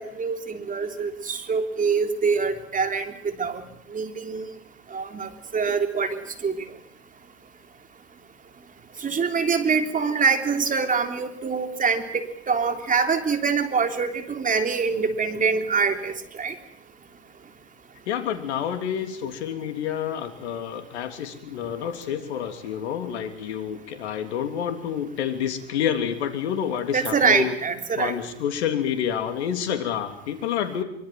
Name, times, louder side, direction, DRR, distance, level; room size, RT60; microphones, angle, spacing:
voice 1, 0.0-3.6 3.9-4.5 4.9-6.6 9.0-16.5 26.9-28.2, right 5 dB, 25° right, 7 dB, 3.5 m, -25 dB
voice 2, 18.1-27.6 28.0-30.8, left 9 dB, 75° left, 8 dB, 3.2 m, -28 dB
25.0 x 24.0 x 7.6 m, 0.70 s
hypercardioid pair, 95°, 33 cm